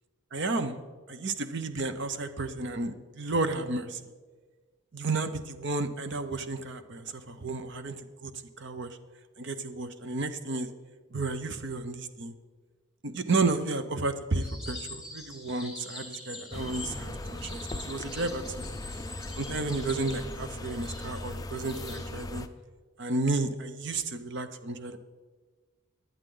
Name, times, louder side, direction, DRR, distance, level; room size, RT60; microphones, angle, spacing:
voice 1, 0.3-0.8 1.1-4.0 4.9-8.3 8.6-9.0 9.4-10.7 11.1-12.3 13.0-18.6 19.4-22.5 23.0-25.0, right 3 dB, 50° right, 10 dB, 0.8 m, -32 dB
sound 1, 14.4-22.0, left 2 dB, 5° right, 2.9 m, -45 dB
sound 2, 16.5-22.5, left 2 dB, 15° left, 0.4 m, -39 dB
19.0 x 11.0 x 3.9 m, 1.4 s
head